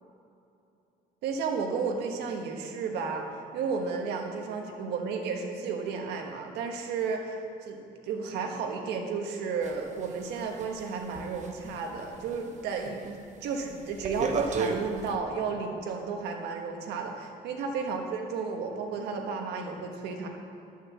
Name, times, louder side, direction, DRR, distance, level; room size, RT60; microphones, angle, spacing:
voice 1, 1.2-3.3 3.5-7.8 8.1-20.3, right 5 dB, 85° right, 2 dB, 1.4 m, -33 dB
sound 1, 9.6-12.4 12.8-13.1 13.4-15.1, right 4 dB, 45° right, 1.1 m, -34 dB
11.5 x 6.4 x 7.3 m, 2.7 s
cardioid pair, 110°, 17 cm